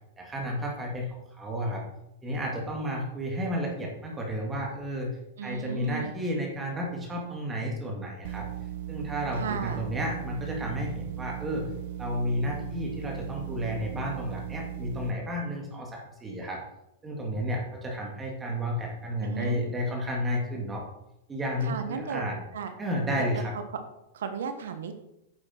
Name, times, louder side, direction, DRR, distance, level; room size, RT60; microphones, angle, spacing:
voice 1, 0.2-1.8 2.2-5.1 5.4-8.5 8.9-11.7 12.0-16.6 17.0-20.8 21.3-22.4 22.8-23.5, equal, 15° right, -1 dB, 2.3 m, -32 dB
voice 2, 5.4-6.1 9.3-9.8 19.2-19.6 21.6-22.2 22.5-22.7 23.2-23.3 24.1-25.0, right 7 dB, 80° right, 8 dB, 1.3 m, -34 dB
sound 1, 8.2-15.1, right 12 dB, 60° right, 0.5 m, -37 dB
9.4 x 7.1 x 4.5 m, 0.86 s
hypercardioid pair, 125°, 0 cm